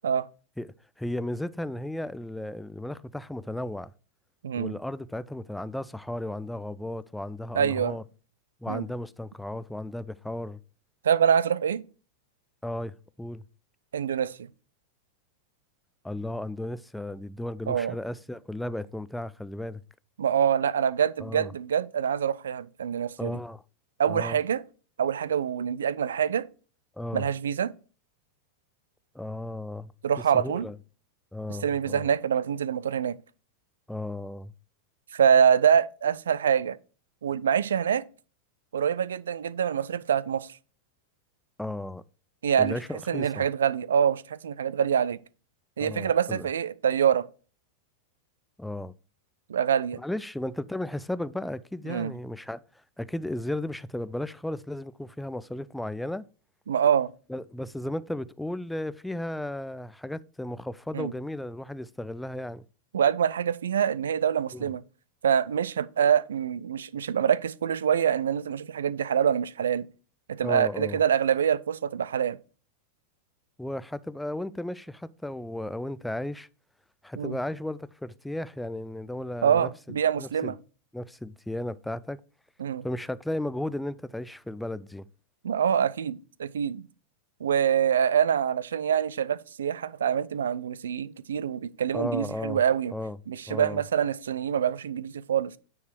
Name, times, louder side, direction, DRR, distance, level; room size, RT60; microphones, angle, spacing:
voice 1, 0.6-3.9 4.5-8.0 8.6-10.6 12.6-13.4 16.0-19.8 21.2-21.5 23.2-23.6 24.1-24.4 27.0-27.3 29.1-29.9 30.3-30.8 31.3-32.1 33.9-34.5 41.6-42.0 42.6-43.5 45.8-46.5 48.6-48.9 50.0-52.6 53.0-56.2 57.3-62.6 64.5-64.7 70.4-71.0 73.6-76.5 77.0-80.5 80.9-82.2 82.8-85.1 91.9-92.6 92.9-93.2 93.5-93.8, left 1 dB, 5° left, 0.4 m, -35 dB
voice 2, 4.4-4.7 7.5-7.9 8.7-8.8 11.0-11.8 13.9-14.5 17.7-17.9 20.2-23.4 24.0-24.6 25.0-26.5 27.1-27.7 30.0-30.7 31.6-33.2 35.1-36.8 37.2-38.0 38.7-40.5 42.4-42.8 43.1-45.2 45.8-47.3 49.5-50.0 51.9-52.1 56.7-57.1 60.9-61.1 62.9-64.8 65.2-69.9 70.3-72.4 77.2-77.4 79.4-80.6 82.6-82.8 85.4-86.8 87.4-92.9 93.3-95.6, right 8 dB, 65° right, 0.4 m, -25 dB
9.4 x 4.7 x 4.5 m
figure-of-eight pair, 90°, 0 cm